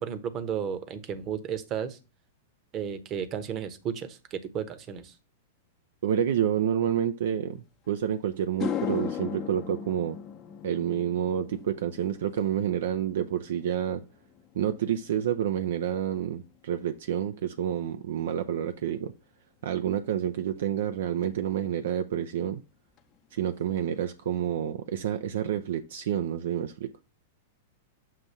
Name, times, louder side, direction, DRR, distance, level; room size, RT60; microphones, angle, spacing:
voice 1, 0.0-2.0 2.7-5.1, right 8 dB, 35° right, 1.0 m, -33 dB
voice 2, 6.0-7.6 7.9-10.2 10.6-14.0 14.5-19.1 19.6-22.6 23.3-26.9, right 9 dB, 65° right, 0.5 m, -29 dB
sound 1, 7.9-8.0 8.4-16.9 17.2-17.6 21.2-21.3 23.0-23.1 23.4-23.5 23.8-24.3, left 9 dB, 35° left, 0.8 m, -39 dB
7.5 x 2.6 x 5.6 m
hypercardioid pair, 100°, 0 cm